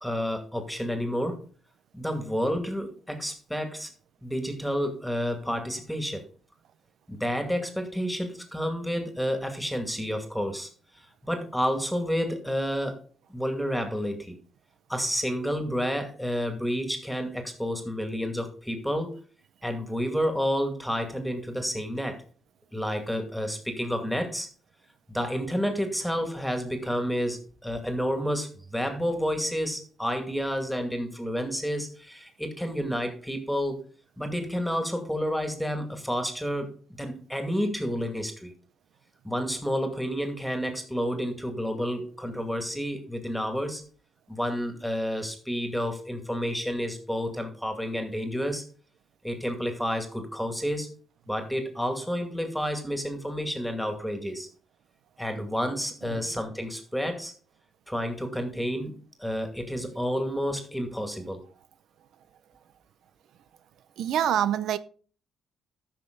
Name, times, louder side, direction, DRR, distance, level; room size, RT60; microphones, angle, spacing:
voice 1, 0.0-1.4 1.9-3.9 4.2-6.2 7.1-10.7 11.0-13.0 13.3-14.4 14.9-19.2 19.6-22.2 22.7-24.5 25.1-33.8 34.2-36.7 37.0-38.5 39.2-43.8 44.3-48.6 49.2-50.9 51.3-54.5 55.2-57.3 57.9-58.9 59.2-61.4, equal, ahead, 2.2 m, -30 dB
voice 2, 64.0-64.8, right 10 dB, 75° right, 0.5 m, -26 dB
13.5 x 5.9 x 3.9 m
cardioid pair, 90°, 0 cm